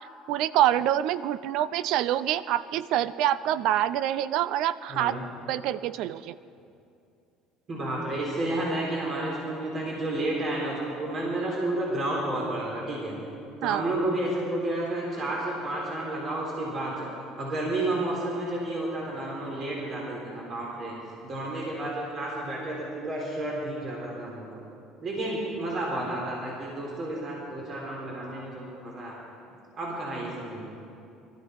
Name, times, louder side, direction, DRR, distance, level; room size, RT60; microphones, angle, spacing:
voice 1, 0.3-5.1 5.5-6.4 13.6-13.8, right 12 dB, 65° right, 17 dB, 0.5 m, -26 dB
voice 2, 4.9-5.2 7.7-13.1 13.6-20.9 21.2-24.5 25.0-29.1 29.8-30.7, right 1 dB, 40° right, -3 dB, 3.8 m, -31 dB
22.5 x 13.5 x 4.7 m, 2.6 s
cardioid pair, 120°, 0 cm